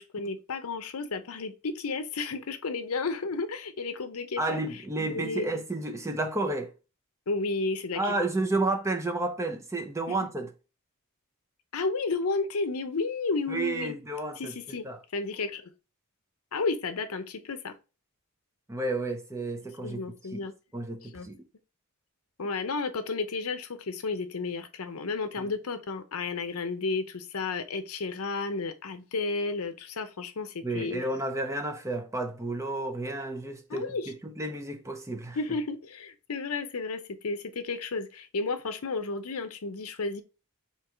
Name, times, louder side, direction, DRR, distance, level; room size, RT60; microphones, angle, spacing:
voice 1, 0.0-4.6 5.0-5.5 7.3-8.3 10.1-10.2 11.7-13.9 14.4-14.9 15.1-15.7 16.5-17.7 19.8-20.5 21.1-21.3 22.4-31.0 33.7-34.1 35.4-40.2, left 3 dB, 75° left, 0.7 m, -32 dB
voice 2, 4.4-6.7 7.9-10.5 13.5-15.0 18.7-20.0 20.3-20.4 20.7-21.4 25.4-25.5 30.6-35.4, right 2 dB, 15° right, 0.6 m, -31 dB
4.6 x 2.9 x 3.4 m
head